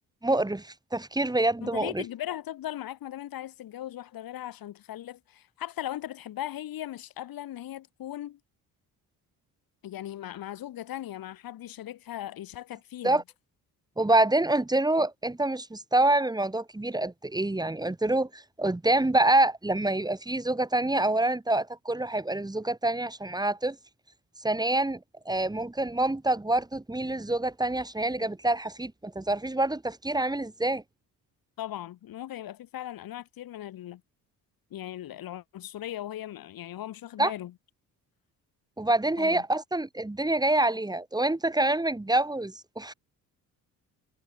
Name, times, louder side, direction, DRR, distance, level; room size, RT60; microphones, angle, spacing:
voice 1, 0.2-2.0 13.0-13.2 14.0-23.8 24.4-25.0 25.2-30.8 37.2-37.3 38.8-42.9, right 2 dB, 10° right, 6.4 m, -26 dB
voice 2, 1.6-8.4 9.8-13.2 31.6-34.0 34.7-37.5 39.2-39.4, left 12 dB, 75° left, 4.7 m, -38 dB
cardioid pair, 115°, 35 cm